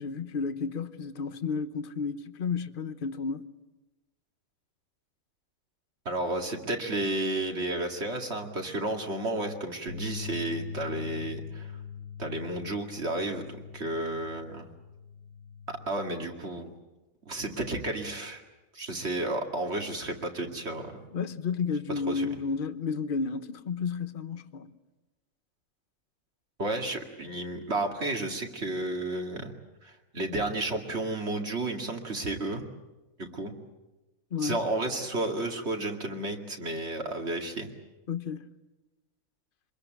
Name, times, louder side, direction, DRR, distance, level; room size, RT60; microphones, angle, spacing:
voice 1, 0.0-3.5 21.1-24.7 34.3-34.6 38.1-38.4, left 5 dB, 45° left, 1.1 m, -32 dB
voice 2, 6.1-11.7 12.2-14.7 15.7-16.7 17.3-18.4 18.7-21.0 22.1-22.3 26.6-29.5 29.8-32.6 33.2-33.5 34.4-37.7, right 2 dB, 50° right, 2.6 m, -32 dB
sound 1, 9.9-16.1, left 6 dB, 65° left, 2.7 m, -42 dB
25.5 x 21.5 x 9.1 m
omnidirectional pair, 1.4 m